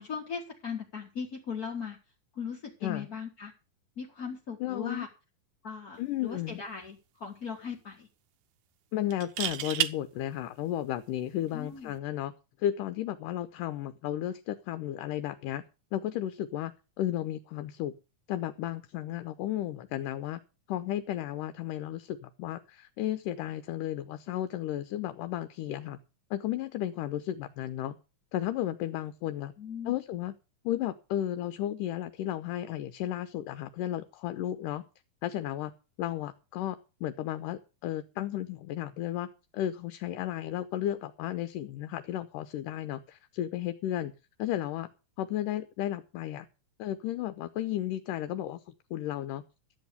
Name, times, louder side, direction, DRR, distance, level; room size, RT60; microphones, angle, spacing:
voice 1, 0.0-2.0 2.3-3.5 4.0-5.1 5.6-8.1 11.5-11.9 29.6-29.9, left 6 dB, 40° left, 0 dB, 1.4 m, -38 dB
voice 2, 4.6-5.1 6.0-6.6 8.9-12.3 12.6-15.6 15.9-17.9 18.3-20.4 20.7-26.0 26.3-28.0 28.3-29.5 29.9-30.3 30.6-34.8 35.2-35.7 36.0-39.3 39.5-44.1 44.4-44.9 45.2-46.5 46.8-48.6 48.9-49.4, left 12 dB, 75° left, 11 dB, 2.2 m, -33 dB
sound 1, 6.3-6.5 6.8-6.9 9.1-9.9 11.8-12.0, right 13 dB, 75° right, 2.0 m, -31 dB
13.0 x 7.8 x 6.7 m, 0.31 s
omnidirectional pair, 4.1 m